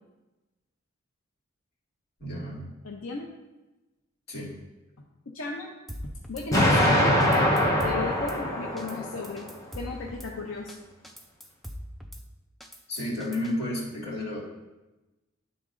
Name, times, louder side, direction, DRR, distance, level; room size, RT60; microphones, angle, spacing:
voice 1, 2.2-2.7 4.3-4.6 12.9-14.4, left 1 dB, 55° left, -5 dB, 1.9 m, -32 dB
voice 2, 2.8-3.3 5.3-5.7 6.0-7.2 7.8-9.5 9.7-10.8, left 3 dB, 85° left, 0 dB, 0.6 m, -35 dB
Drum kit / Snare drum, 5.9-6.5 6.8-6.9 7.2-8.4 8.8-9.0 9.2-10.3 10.7-10.8 11.0-12.2 12.6-13.5, equal, ahead, 0.4 m, -41 dB
Explosion, 6.5-9.5, equal, 15° left, 0.8 m, -23 dB
11.0 x 3.8 x 2.5 m, 1.1 s
head